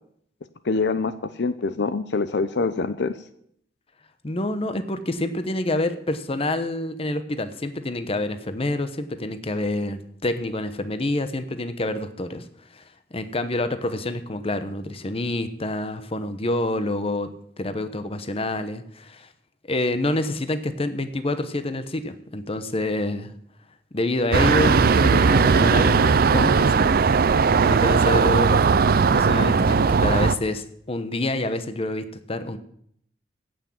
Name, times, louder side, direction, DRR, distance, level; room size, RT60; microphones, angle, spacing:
voice 1, 0.6-1.1 1.4-3.1, left 4 dB, 70° left, 12 dB, 0.6 m, -24 dB
voice 2, 4.2-12.4 12.7-12.8 13.1-17.3 17.6-19.3 19.7-23.3 23.9-26.9 27.6-28.6 29.0-32.6, left 2 dB, 35° left, 10 dB, 1.0 m, -27 dB
sound 1, 24.3-30.3, right 5 dB, 55° right, 0.5 m, -18 dB
15.5 x 6.2 x 7.4 m, 0.69 s
head